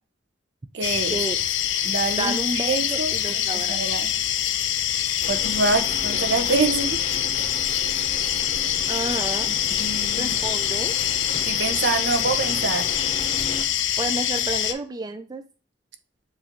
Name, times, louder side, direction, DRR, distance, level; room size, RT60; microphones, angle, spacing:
voice 1, 0.7-1.2 1.8-3.1 3.5-4.1 5.3-7.0 9.8-10.4 11.5-12.9, right 4 dB, 65° right, 0.7 m, -25 dB
sound 1, 0.8-14.7, left 10 dB, 85° left, 0.5 m, -25 dB
voice 2, 2.2-3.8 8.9-9.5 10.1-10.9 14.0-15.4, right 2 dB, 20° right, 0.3 m, -30 dB
sound 2, 5.2-13.6, left 2 dB, 35° left, 0.8 m, -36 dB
7.1 x 2.6 x 2.8 m
head